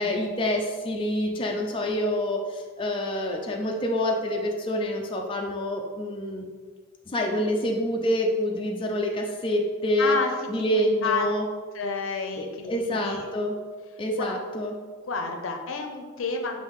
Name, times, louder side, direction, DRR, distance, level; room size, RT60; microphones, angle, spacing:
voice 1, 0.0-6.4 7.1-10.2 10.5-11.5 12.4-13.6 14.0-14.8, left 1 dB, 25° left, 0 dB, 0.4 m, -27 dB
voice 2, 10.0-10.3 10.7-11.3 11.7-13.3 14.2-14.3 15.0-16.6, left 4 dB, 80° left, 4 dB, 0.5 m, -30 dB
5.5 x 2.6 x 3.5 m, 1.5 s
head